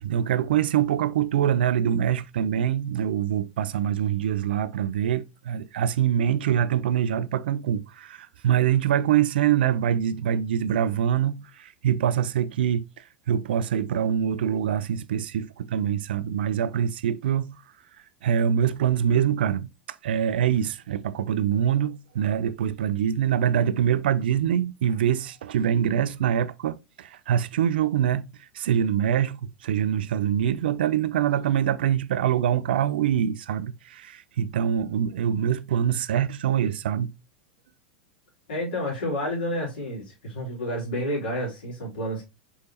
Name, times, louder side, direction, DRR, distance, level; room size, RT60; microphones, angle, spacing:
voice 1, 0.0-17.6 18.2-19.7 20.0-37.1, right 9 dB, 70° right, 0.4 m, -24 dB
voice 2, 38.5-42.2, equal, 70° left, 2.8 m, -30 dB
4.5 x 3.4 x 2.8 m
hypercardioid pair, 95°, 5 cm